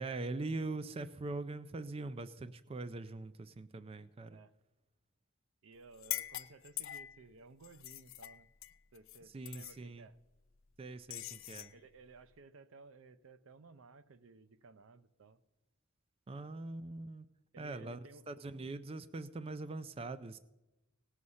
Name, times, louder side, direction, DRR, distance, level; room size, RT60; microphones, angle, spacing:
voice 1, 0.0-4.4 9.3-10.1 10.8-11.7 16.3-17.3 17.6-18.0 18.3-20.4, right 3 dB, 30° right, 12 dB, 0.4 m, -42 dB
voice 2, 5.6-8.5 8.9-10.2 11.7-15.4 16.3-16.4 17.5-18.3, right 3 dB, 75° right, 14 dB, 0.6 m, -57 dB
sound 1, 5.9-7.2 7.6-9.2 9.4-9.8 11.1-11.7, left 15 dB, 70° left, 0.4 m, -43 dB
18.0 x 6.4 x 5.5 m, 1.0 s
head